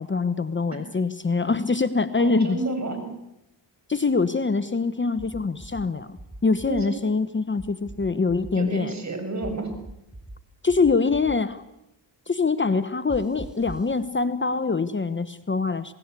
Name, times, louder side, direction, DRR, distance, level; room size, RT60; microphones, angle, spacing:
voice 1, 0.0-2.6 3.9-8.9 10.6-11.6 12.3-15.9, left 4 dB, 25° left, 12 dB, 1.1 m, -24 dB
voice 2, 2.2-3.0 6.7-7.0 8.5-9.7, right 3 dB, 40° right, 6 dB, 7.3 m, -30 dB
sound 1, 5.2-5.8 6.2-6.8 7.6-8.5 9.4-10.4 10.7-11.4 13.1-13.9, right 1 dB, ahead, 2.6 m, -40 dB
27.5 x 19.0 x 8.3 m, 0.85 s
cardioid pair, 80°, 42 cm